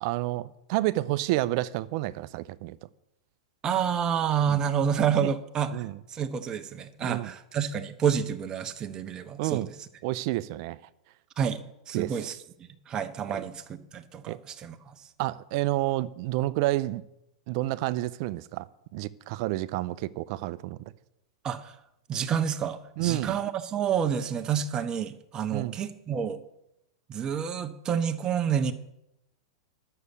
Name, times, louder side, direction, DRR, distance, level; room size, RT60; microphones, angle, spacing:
voice 1, 0.0-2.8 4.5-4.6 5.2-5.3 5.7-6.0 7.0-7.3 9.4-9.7 10.0-10.8 11.9-12.2 13.3-13.4 14.3-14.4 15.2-17.0 17.5-18.7 18.9-20.8 23.0-23.4 25.5-25.8, right 17 dB, 55° right, 0.6 m, -29 dB
voice 2, 3.6-9.7 11.4-12.3 12.9-15.0 21.4-21.7 22.1-26.4 27.1-28.7, right 8 dB, 25° right, 1.1 m, -29 dB
11.0 x 6.8 x 8.4 m
hypercardioid pair, 120°, 3 cm